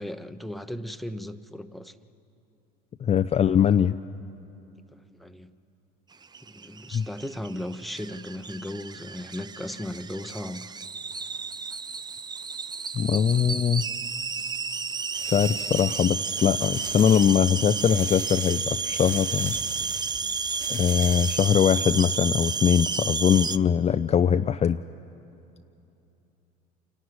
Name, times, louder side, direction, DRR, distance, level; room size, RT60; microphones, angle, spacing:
voice 1, 0.0-1.9 5.2-5.5 6.4-10.7, left 1 dB, ahead, 8 dB, 0.9 m, -36 dB
voice 2, 3.0-3.9 6.9-7.1 12.9-13.8 15.2-19.5 20.7-24.8, left 8 dB, 30° left, 9 dB, 0.5 m, -22 dB
sound 1, 6.2-23.6, right 5 dB, 20° right, 0.5 m, -32 dB
sound 2, 15.1-21.5, right 4 dB, 70° right, 3.7 m, -42 dB
27.5 x 11.5 x 9.6 m, 2.9 s
hypercardioid pair, 75°, 21 cm